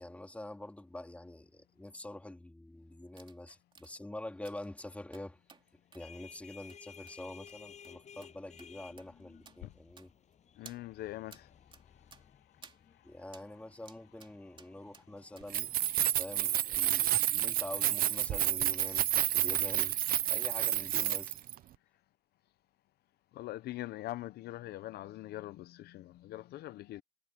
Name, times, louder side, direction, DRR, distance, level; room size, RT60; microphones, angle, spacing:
voice 1, 0.0-5.4 5.9-10.1 13.0-15.7 16.2-20.0 20.3-21.4, left 1 dB, 10° left, 3.1 m, -46 dB
sound 1, 3.2-3.4 3.7-3.9 4.4-4.7 5.1-5.6 5.9-6.1 6.7-6.8 7.1-7.2 7.5-7.6 7.8-7.9 8.2-8.3 8.6-8.7 9.0-9.1 9.5-9.6 10.0-10.3 10.7-10.8 11.3-11.4 11.7-11.8 12.1-12.2 12.6-12.8 13.3-13.5 13.9-14.3 14.6-15.0 15.4-15.5 15.8-16.0 16.3-16.4, right 5 dB, 30° right, 2.8 m, -56 dB
sound 2, 5.7-17.1, left 7 dB, 45° left, 7.6 m, -57 dB
voice 2, 10.6-11.5 23.3-27.0, left 15 dB, 70° left, 0.7 m, -42 dB
Keys jangling, 15.4-21.5, right 12 dB, 60° right, 0.7 m, -30 dB
cardioid pair, 110°, 17 cm